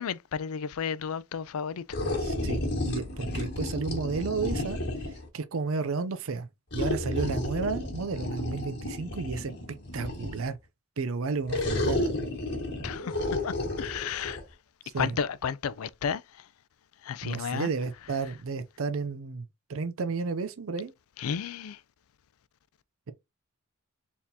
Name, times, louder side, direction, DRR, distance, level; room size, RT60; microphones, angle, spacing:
voice 1, 0.0-2.0 12.8-14.4 15.0-16.5 17.0-17.7 21.2-21.8, left 7 dB, 85° left, 0.4 m, -33 dB
sound 1, 1.9-5.3 6.7-10.5 11.5-14.4, left 1 dB, 55° left, 1.9 m, -32 dB
voice 2, 2.2-2.6 2.9-6.5 6.7-9.5 9.9-10.6 11.0-12.1 14.9-15.2 17.2-20.9, right 4 dB, 70° right, 0.5 m, -32 dB
4.3 x 3.6 x 2.8 m
head